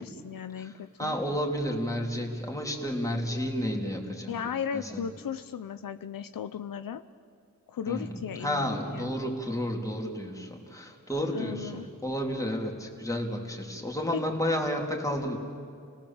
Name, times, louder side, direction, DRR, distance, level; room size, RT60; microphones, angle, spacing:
voice 1, 0.0-1.2 4.3-7.0 7.7-9.1 11.3-11.9 14.1-14.2, left 8 dB, 75° left, 10 dB, 0.7 m, -36 dB
voice 2, 1.0-4.3 4.7-4.9 7.9-8.1 8.4-11.7 12.0-15.4, equal, 10° left, 0 dB, 3.2 m, -31 dB
29.5 x 18.5 x 7.2 m, 2.4 s
wide cardioid pair, 95°, 34 cm